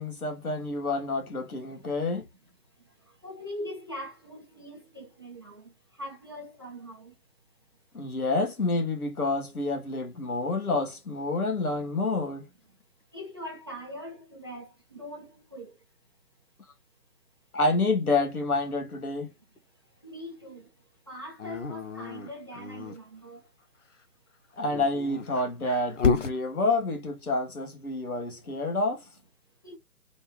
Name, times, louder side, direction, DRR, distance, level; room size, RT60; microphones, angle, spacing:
voice 1, 0.0-2.3 7.9-12.4 17.5-19.3 24.6-29.0, left 2 dB, 65° left, 1.4 m, -28 dB
voice 2, 3.2-5.7 6.0-7.1 13.1-15.7 20.0-20.7 21.1-23.4 29.6-29.8, equal, 15° right, 0.6 m, -41 dB
Dog, 21.4-23.0 24.6-26.4, left 5 dB, 50° left, 0.9 m, -30 dB
3.4 x 3.4 x 3.0 m
figure-of-eight pair, 145°, 46 cm